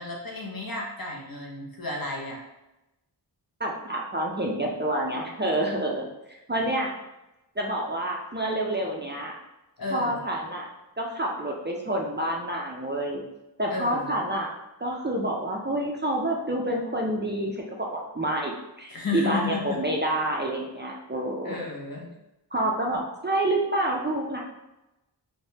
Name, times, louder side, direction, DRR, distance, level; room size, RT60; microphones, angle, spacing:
voice 1, 0.0-2.4 9.8-10.2 13.7-14.1 18.9-19.6 21.4-22.1, left 3 dB, 55° left, -2 dB, 0.7 m, -32 dB
voice 2, 3.6-6.1 6.5-6.9 7.6-9.4 9.9-10.7 11.0-13.2 13.6-14.5 14.8-21.6 22.5-24.4, right 1 dB, 25° right, -2 dB, 0.4 m, -28 dB
3.3 x 2.1 x 2.7 m, 0.94 s
wide cardioid pair, 45°, 43 cm